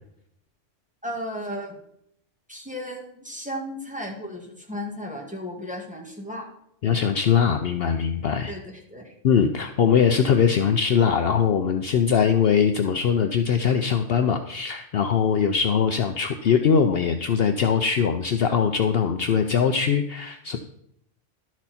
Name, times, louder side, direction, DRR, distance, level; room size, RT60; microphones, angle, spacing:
voice 1, 1.0-1.8 2.5-6.5 8.5-9.1, equal, 5° right, -1 dB, 1.8 m, -34 dB
voice 2, 6.8-8.5 9.2-20.6, left 7 dB, 60° left, 7 dB, 0.8 m, -21 dB
12.0 x 6.2 x 4.2 m, 0.73 s
omnidirectional pair, 1.2 m